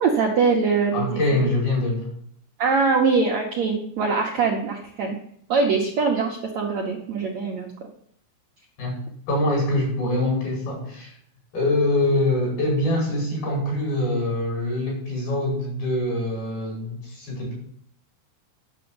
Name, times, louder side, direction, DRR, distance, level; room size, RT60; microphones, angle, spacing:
voice 1, 0.0-1.2 2.6-5.2 5.5-7.7, right 4 dB, 65° right, 0 dB, 1.8 m, -22 dB
voice 2, 0.9-2.1 8.8-9.0 9.3-11.1 11.5-17.5, left 1 dB, 60° left, -2 dB, 6.9 m, -24 dB
10.5 x 7.0 x 8.8 m, 0.65 s
omnidirectional pair, 4.8 m